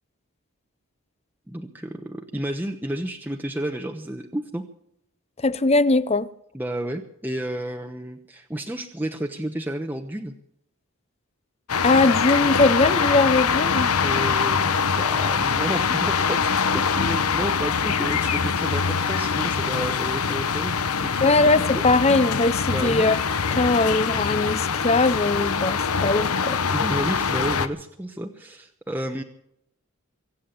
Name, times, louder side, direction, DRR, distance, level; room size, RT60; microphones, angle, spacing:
voice 1, 1.5-4.6 6.5-10.3 14.0-21.8 22.6-23.1 26.7-29.2, right 1 dB, 10° right, 0.9 m, -31 dB
voice 2, 5.4-6.3 11.8-13.9 21.2-23.2 23.6-26.6, left 2 dB, 30° left, 0.6 m, -20 dB
sound 1, 11.7-27.7, left 6 dB, 80° left, 1.1 m, -23 dB
23.5 x 8.5 x 7.1 m
head